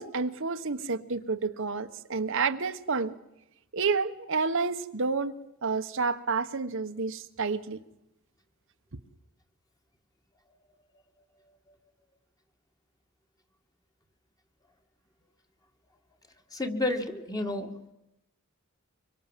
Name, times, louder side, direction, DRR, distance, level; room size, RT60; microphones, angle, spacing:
voice 1, 0.0-3.1 3.7-5.4 5.6-7.8, right 4 dB, 65° right, 1.2 m, -29 dB
voice 2, 16.5-17.7, left 2 dB, 20° left, 2.3 m, -30 dB
25.0 x 24.0 x 7.5 m
head